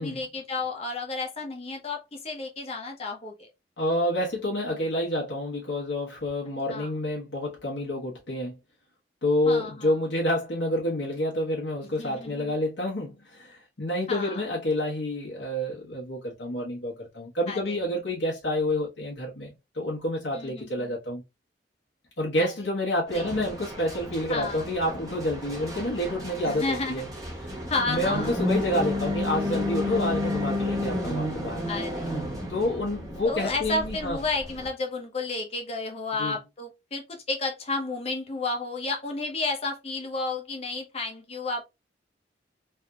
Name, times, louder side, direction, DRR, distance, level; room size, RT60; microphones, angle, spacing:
voice 1, 0.0-3.5 6.7-6.9 9.5-9.9 12.0-12.5 14.1-14.4 17.5-17.7 20.3-21.0 22.4-22.5 23.1-23.3 24.3-24.6 26.4-27.0 27.7-28.3 31.7-32.3 33.2-41.6, left 3 dB, 35° left, 0.8 m, -32 dB
voice 2, 3.8-8.5 9.2-21.2 22.2-27.1 27.4-27.6 27.9-31.6 32.5-34.2 36.2-36.4, left 1 dB, 90° left, 1.2 m, -28 dB
sound 1, 23.1-34.7, left 1 dB, 20° right, 0.8 m, -32 dB
3.3 x 2.7 x 2.3 m
head